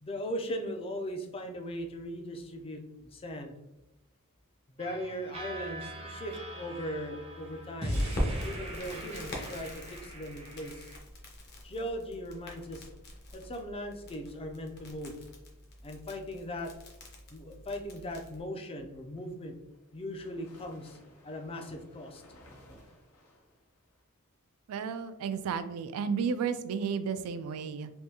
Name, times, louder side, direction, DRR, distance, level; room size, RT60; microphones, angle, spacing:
voice 1, 0.0-3.5 4.7-8.0 8.4-10.9 11.6-12.9 13.3-15.2 15.8-16.7 17.3-19.6 19.9-21.0 21.2-22.2, equal, 25° left, 4 dB, 0.4 m, -39 dB
sound 1, 4.8-11.0, equal, 25° right, 0.6 m, -39 dB
Crackle, 7.9-18.4, equal, 50° left, 0.8 m, -42 dB
sound 2, 18.9-24.0, left 1 dB, 85° left, 0.7 m, -57 dB
voice 2, 24.7-27.9, right 6 dB, 75° right, 12 dB, 0.3 m, -33 dB
3.5 x 2.6 x 2.8 m, 0.95 s
head